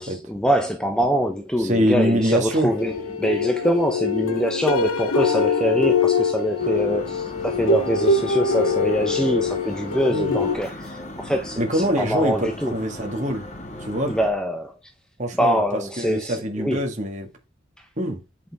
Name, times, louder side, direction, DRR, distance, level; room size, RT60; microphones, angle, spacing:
voice 1, 0.0-12.7 14.0-14.7 15.3-16.8 17.8-17.9, equal, 5° left, 0.9 m, -24 dB
voice 2, 1.6-2.7 10.1-10.4 11.6-13.5 13.8-14.1 15.2-15.6 16.0-17.3 18.0-18.2, equal, 35° right, 2.0 m, -24 dB
sound 1, 2.7-10.6, left 4 dB, 90° left, 1.2 m, -23 dB
sound 2, 6.6-14.3, left 1 dB, 35° left, 1.9 m, -38 dB
8.5 x 7.0 x 3.6 m
head